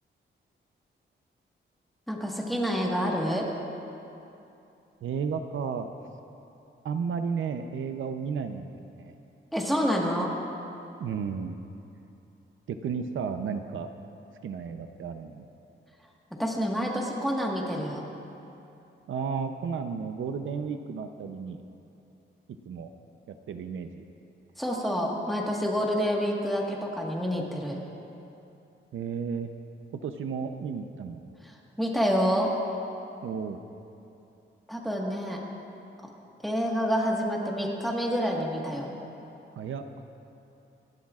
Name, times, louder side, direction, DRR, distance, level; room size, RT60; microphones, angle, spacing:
voice 1, 2.1-3.5 9.5-10.3 16.4-18.0 24.6-27.8 31.4-32.5 34.7-35.4 36.4-38.9, equal, ahead, -2 dB, 1.5 m, -28 dB
voice 2, 5.0-5.9 6.8-9.1 10.9-11.6 12.7-13.9 14.4-15.5 19.1-21.6 22.6-22.9 23.3-24.0 28.9-29.5 29.9-31.3 33.2-33.6 39.5-39.8, right 6 dB, 75° right, 7 dB, 0.7 m, -33 dB
26.5 x 11.5 x 2.4 m, 2.8 s
wide cardioid pair, 170°, 20 cm